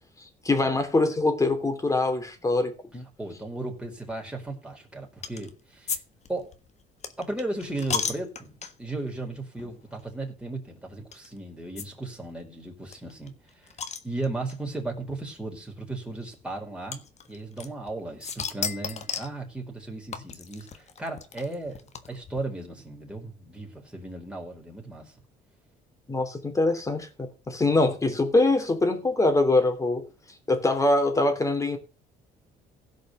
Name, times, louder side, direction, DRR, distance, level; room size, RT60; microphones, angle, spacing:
voice 1, 0.4-3.0 26.1-30.1 30.5-31.8, left 2 dB, 20° left, 3.1 m, -23 dB
voice 2, 3.2-6.0 6.3-6.5 7.2-13.7 14.0-17.0 17.3-25.1, right 2 dB, 5° right, 4.7 m, -36 dB
sound 1, 5.2-5.5 5.9-9.0 9.6-9.7 10.0-10.1 11.1-11.3 11.8-11.9 12.1-12.2 12.4-12.5 12.9-14.6 15.5-15.6 16.9-17.9 18.2-19.4 20.1-22.4, left 6 dB, 40° left, 1.5 m, -34 dB
16.5 x 5.5 x 6.9 m
cardioid pair, 110°, 17 cm